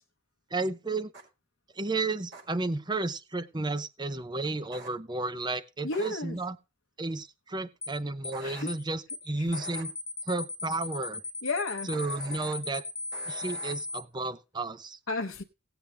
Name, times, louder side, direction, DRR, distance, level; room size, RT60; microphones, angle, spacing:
voice 1, 0.5-1.1 1.8-6.6 7.0-9.9 10.3-11.2 11.8-12.8 13.3-15.0, right 3 dB, 20° right, 14 dB, 0.7 m, -32 dB
sound 1, 1.1-1.2 2.3-2.4 4.7-4.9 5.9-6.1 8.3-8.6 9.5-9.8 11.9-12.5 13.1-13.7, right 4 dB, 65° right, 5.6 m, -45 dB
voice 2, 5.8-6.4 8.4-8.7 11.4-11.9 15.1-15.4, left 3 dB, 80° left, 2 dB, 1.0 m, -32 dB
sound 2, 7.8-8.0 8.2-8.4 8.7-8.8 9.1-9.3 9.5-14.0, left 3 dB, 20° left, 0.5 m, -37 dB
17.5 x 8.0 x 3.3 m, 0.29 s
head